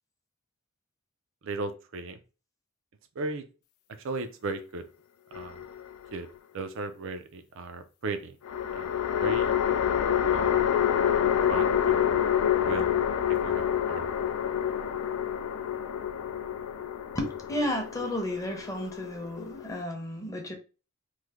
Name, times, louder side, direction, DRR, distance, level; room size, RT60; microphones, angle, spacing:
voice 1, 1.4-2.2 3.2-3.4 4.0-4.8 5.3-5.6 6.1-6.3 6.5-8.4 8.7-9.5 10.3-10.7 11.5-12.2 12.6-13.0 13.3-14.2, right 3 dB, 65° right, 0.4 m, -36 dB
sound 1, 5.3-6.2 8.4-19.8, left 9 dB, 85° left, 0.3 m, -27 dB
voice 2, 17.1-20.5, equal, 15° left, 0.7 m, -33 dB
3.1 x 2.1 x 3.5 m
head